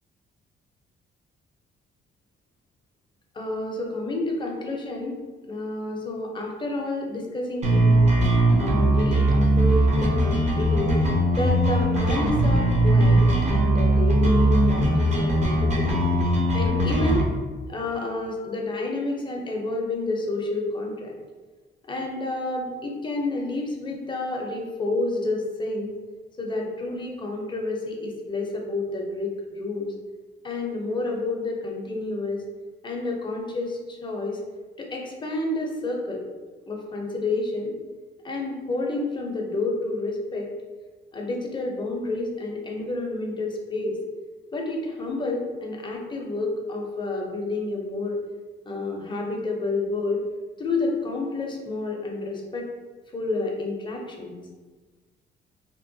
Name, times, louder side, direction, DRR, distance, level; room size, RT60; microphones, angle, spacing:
voice 1, 3.3-5.2 5.5-8.0 8.6-10.9 11.3-16.0 16.5-17.3 17.7-21.1 21.8-25.9 26.4-29.9 30.4-32.4 32.8-34.4 34.8-36.2 36.7-37.7 38.2-40.5 41.1-44.0 44.5-48.2 48.7-50.2 50.6-52.7 53.1-54.4, left 2 dB, 25° left, 0 dB, 0.5 m, -29 dB
sound 1, 7.6-17.2, right 1 dB, 35° right, 0.6 m, -20 dB
2.8 x 2.1 x 2.6 m, 1.3 s
cardioid pair, 90°, 20 cm